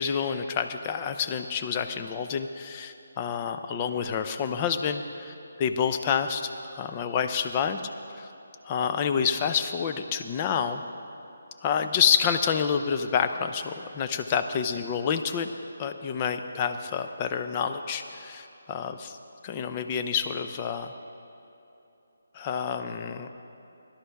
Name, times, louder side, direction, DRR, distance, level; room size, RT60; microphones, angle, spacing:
voice 1, 0.0-7.8 8.2-8.3 8.6-10.8 11.6-15.5 15.8-19.2 19.4-20.9 22.3-23.3, left 7 dB, 25° left, 7 dB, 0.6 m, -28 dB
17.5 x 11.5 x 3.5 m, 3.0 s
figure-of-eight pair, 150°, 0 cm